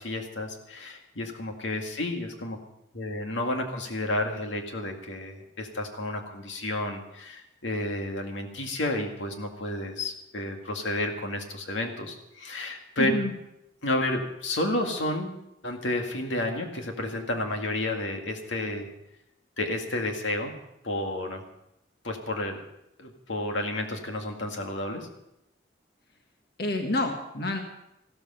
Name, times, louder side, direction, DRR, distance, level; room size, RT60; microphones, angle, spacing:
voice 1, 0.0-2.6 2.9-13.1 13.8-18.9 19.6-20.5 20.8-21.4 22.0-22.6 23.0-25.1, left 1 dB, 90° left, 3 dB, 2.2 m, -31 dB
voice 2, 13.0-13.3 26.6-27.6, left 2 dB, 55° left, 3 dB, 1.6 m, -28 dB
15.0 x 13.5 x 5.6 m, 0.83 s
head